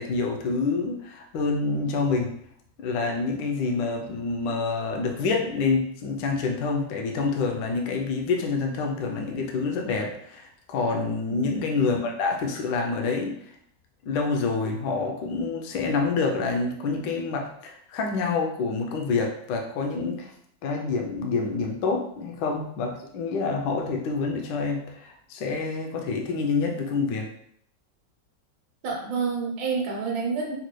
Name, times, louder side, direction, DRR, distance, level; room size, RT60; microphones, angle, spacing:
voice 1, 0.0-2.3 2.8-13.4 14.0-20.3 20.6-27.3, left 4 dB, 75° left, 2 dB, 1.2 m, -27 dB
voice 2, 11.3-11.7 28.8-30.5, right 4 dB, 75° right, -1 dB, 1.4 m, -28 dB
4.1 x 2.2 x 3.0 m, 0.67 s
omnidirectional pair, 2.1 m